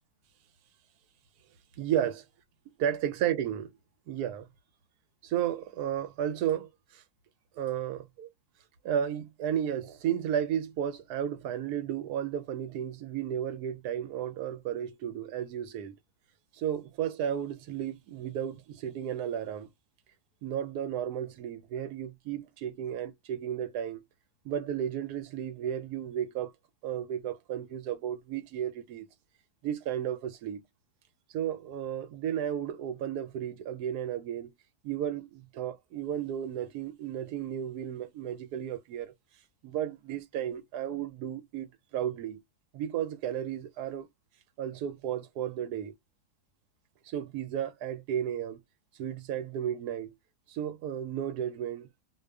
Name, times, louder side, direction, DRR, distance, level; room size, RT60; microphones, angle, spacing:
voice 1, 1.8-2.1 2.8-3.7 4.1-4.5 5.2-7.0 7.6-8.3 8.8-16.0 16.6-19.7 20.4-24.0 24.4-26.5 26.8-29.1 29.6-30.6 31.3-34.5 34.8-39.1 39.6-42.4 42.7-44.1 44.6-45.9 47.1-48.6 49.0-50.1 50.5-51.9, right 10 dB, 80° right, 1.1 m, -33 dB
2.6 x 2.3 x 2.2 m
omnidirectional pair, 1.6 m